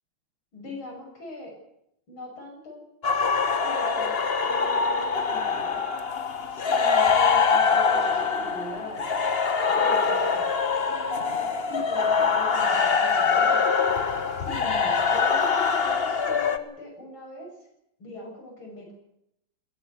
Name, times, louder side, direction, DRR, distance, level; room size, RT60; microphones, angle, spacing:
voice 1, 0.5-1.5 2.1-2.8 3.6-4.2 4.4-5.9 6.5-9.1 9.7-10.5 10.8-13.7 14.4-15.5 15.8-17.5 18.0-18.9, left 1 dB, 65° left, 2 dB, 7.3 m, -40 dB
sound 1, 3.0-16.6, left 5 dB, 35° left, 1.1 m, -24 dB
21.0 x 17.0 x 8.1 m, 0.78 s
omnidirectional pair, 2.4 m